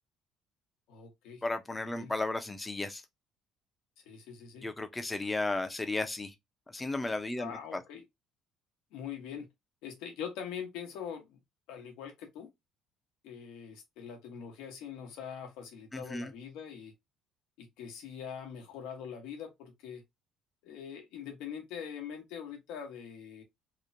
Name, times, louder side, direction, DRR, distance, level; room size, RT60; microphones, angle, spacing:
voice 1, 0.9-1.4 1.8-2.1 4.1-4.7 7.4-8.0 8.9-9.5 9.8-11.4 11.7-12.5 13.2-16.9 17.6-20.0 20.6-23.4, left 7 dB, 85° left, 0.9 m, -43 dB
voice 2, 1.4-3.0 4.6-6.3 6.7-7.8 15.9-16.3, left 2 dB, 15° left, 0.4 m, -34 dB
2.9 x 2.1 x 2.5 m
cardioid pair, 130°, 0 cm